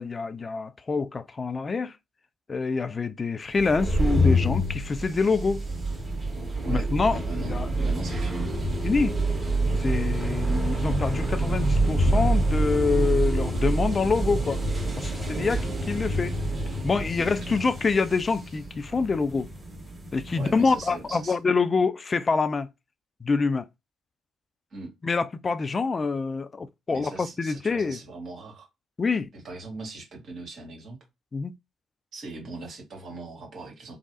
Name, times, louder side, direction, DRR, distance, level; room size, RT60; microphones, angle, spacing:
voice 1, 0.0-1.9 2.5-5.6 6.7-7.9 8.8-9.2 9.8-14.6 15.0-16.3 16.8-19.5 20.1-22.7 23.2-23.7 25.0-28.0 29.0-29.3 31.3-31.5, left 4 dB, 35° left, 0.4 m, -26 dB
sound 1, 3.6-21.0, right 1 dB, 25° right, 1.4 m, -27 dB
voice 2, 6.6-7.5 7.8-8.5 17.2-17.7 20.4-21.4 24.7-24.9 26.9-28.7 29.3-31.0 32.1-34.0, right 3 dB, 50° right, 1.6 m, -40 dB
3.1 x 2.0 x 2.8 m
figure-of-eight pair, 40°, 0 cm